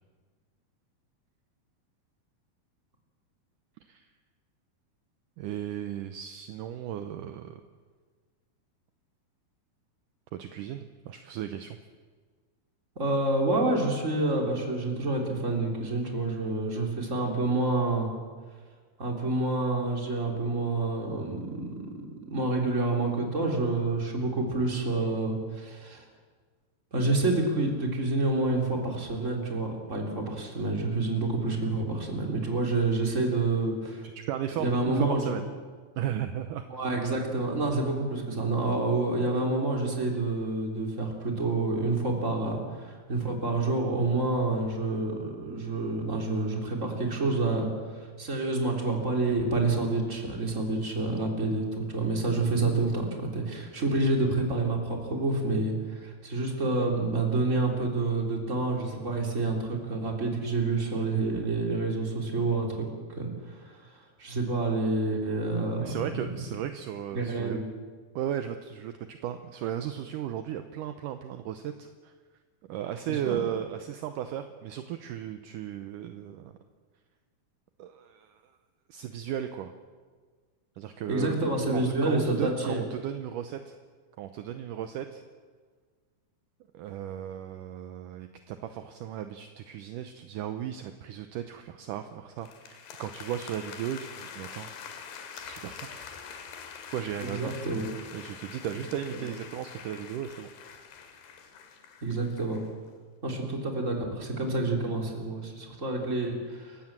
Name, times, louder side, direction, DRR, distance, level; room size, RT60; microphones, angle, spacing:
voice 1, 5.4-7.6 10.4-11.8 34.2-35.4 36.0-36.6 65.8-67.6 68.2-72.1 72.7-76.6 77.8-78.4 78.9-79.7 80.8-81.4 81.7-83.8 84.2-85.2 86.7-94.7 95.3-96.0 96.9-97.6 98.1-100.5, right 10 dB, 75° right, 8 dB, 2.1 m, -35 dB
voice 2, 13.0-18.1 19.0-22.0 22.3-26.0 26.9-34.1 34.6-35.3 36.7-66.3 67.1-67.6 73.1-73.4 81.1-82.8 97.2-97.8 99.2-99.3 102.0-102.6 103.2-106.8, right 2 dB, 20° right, 1 dB, 3.4 m, -28 dB
sound 1, 92.4-102.7, left 7 dB, 85° left, 3.9 m, -45 dB
28.5 x 16.0 x 7.5 m, 1.5 s
omnidirectional pair, 4.5 m